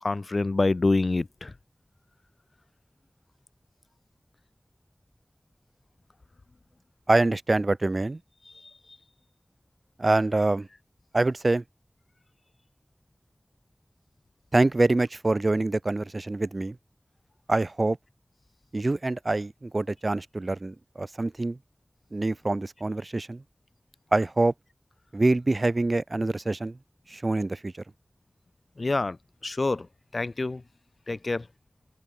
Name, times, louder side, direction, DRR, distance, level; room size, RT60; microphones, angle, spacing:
voice 1, 0.0-1.5 8.5-8.7 28.8-29.2 29.4-29.9 30.1-30.6 31.1-31.5, left 3 dB, 75° left, 0.4 m, -26 dB
voice 2, 7.1-8.2 10.0-10.7 11.1-11.6 14.5-16.8 17.5-18.0 18.7-21.6 22.1-23.4 24.1-24.5 25.1-26.8 27.1-27.7, right 2 dB, 60° right, 2.5 m, -25 dB
open air
wide cardioid pair, 45°, 0 cm